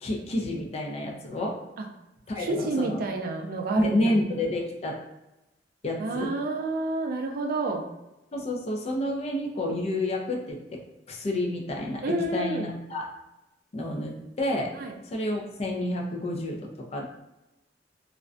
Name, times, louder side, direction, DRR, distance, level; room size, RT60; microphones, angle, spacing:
voice 1, 0.0-1.6 2.3-3.0 3.8-5.0 5.8-6.3 8.3-10.8 11.1-12.1 12.3-13.1 13.7-14.7 15.0-17.0, left 1 dB, 35° left, 0 dB, 0.4 m, -29 dB
voice 2, 2.4-4.1 6.0-7.9 12.0-12.7 14.8-15.0, right 2 dB, 55° right, 3 dB, 0.3 m, -29 dB
2.4 x 2.1 x 2.4 m, 0.95 s
head